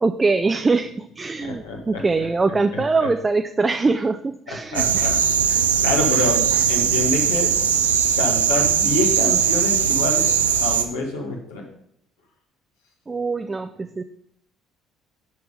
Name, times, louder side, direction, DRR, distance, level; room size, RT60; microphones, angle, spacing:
voice 1, 0.0-5.1 6.4-6.5 13.1-14.0, right 3 dB, 25° right, 8 dB, 0.5 m, -23 dB
voice 2, 1.4-3.1 4.7-5.2 5.5-6.4 6.7-7.5 8.2-11.6, left 2 dB, 80° left, -1 dB, 1.8 m, -27 dB
sound 1, 4.7-10.8, right 7 dB, 85° right, 0.6 m, -20 dB
7.7 x 5.9 x 5.5 m, 0.74 s
figure-of-eight pair, 55°, 0 cm